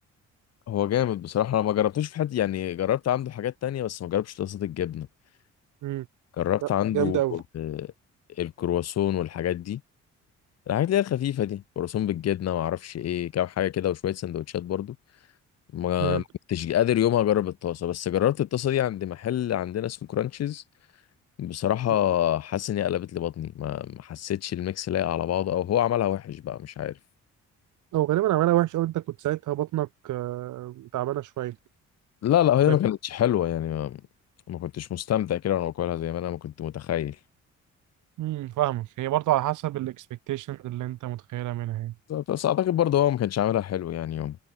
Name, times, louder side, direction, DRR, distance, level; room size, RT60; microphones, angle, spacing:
voice 1, 0.7-5.1 6.4-7.9 8.4-9.8 10.7-15.0 15.7-20.6 21.4-27.0 32.2-34.0 34.5-37.2 42.1-44.4, left 11 dB, 55° left, 0.9 m, -26 dB
voice 2, 6.9-7.3 16.0-16.2 27.9-31.5 38.2-39.9 40.3-41.9, right 15 dB, 80° right, 1.4 m, -27 dB
cardioid pair, 90°, 30 cm